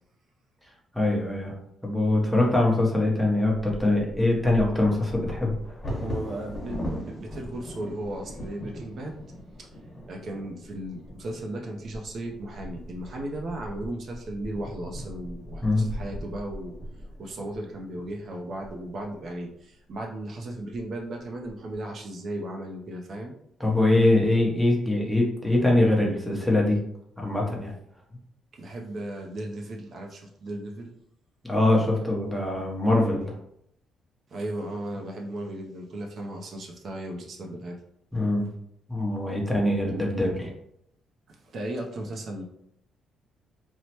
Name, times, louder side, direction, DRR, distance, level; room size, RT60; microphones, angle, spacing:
voice 1, 0.9-1.6 1.8-5.5 15.6-15.9 23.6-26.8 27.2-27.7 31.4-33.3 38.1-38.5 38.9-40.5, left 2 dB, ahead, -2 dB, 0.7 m, -23 dB
Bird vocalization bird call bird song / Wind / Thunder, 3.4-19.3 19.9-20.0 20.4-20.8 21.2-21.7, equal, 30° left, 1.1 m, -39 dB
voice 2, 6.0-9.3 10.1-16.7 17.2-23.3 28.5-30.9 34.3-37.8 41.3-42.4, right 1 dB, 50° right, 1 dB, 0.4 m, -36 dB
3.0 x 2.0 x 2.8 m, 0.74 s
cardioid pair, 105°, 0 cm